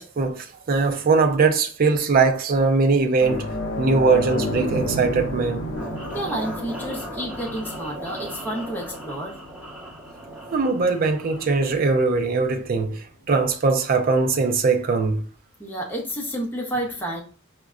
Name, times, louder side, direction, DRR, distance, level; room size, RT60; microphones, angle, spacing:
voice 1, 0.0-3.5 3.8-5.7 10.5-15.2, right 4 dB, 45° right, 0.4 m, -21 dB
sound 1, 3.2-12.1 12.5-12.7 14.7-14.8, left 1 dB, 55° left, 0.7 m, -32 dB
sound 2, 5.8-11.7, equal, 5° right, 1.5 m, -38 dB
voice 2, 6.1-9.3 15.6-17.2, right 1 dB, 10° left, 0.7 m, -30 dB
4.9 x 2.1 x 2.4 m
head